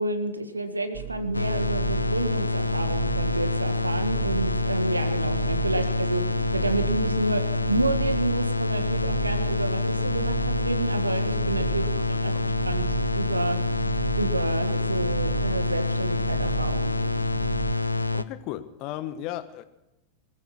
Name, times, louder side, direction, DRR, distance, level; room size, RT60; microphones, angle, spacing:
voice 1, 0.0-11.9 12.2-12.3 12.6-13.7 14.2-17.2, right 2 dB, 80° right, 10 dB, 1.6 m, -29 dB
sound 1, 0.9-17.7, right 16 dB, 40° right, 0.5 m, -35 dB
sound 2, 1.3-18.2, left 3 dB, 80° left, 0.6 m, -27 dB
voice 2, 11.6-12.0 12.3-12.4 18.1-19.6, left 13 dB, 40° left, 13 dB, 1.4 m, -36 dB
21.5 x 15.0 x 4.2 m, 0.95 s
figure-of-eight pair, 90°, 0 cm